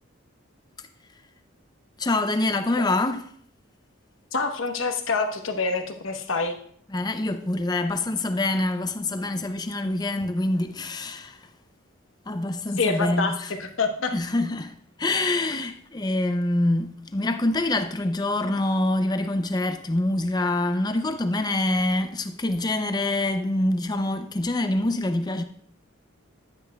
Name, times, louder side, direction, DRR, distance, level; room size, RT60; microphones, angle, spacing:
voice 1, 2.0-3.2 6.9-11.5 12.3-13.5 14.1-14.7 15.0-25.4, left 2 dB, 20° left, 0.5 m, -25 dB
voice 2, 4.3-6.6 12.8-13.3 13.6-14.1, left 4 dB, 70° left, 1.0 m, -26 dB
10.5 x 9.7 x 2.3 m
head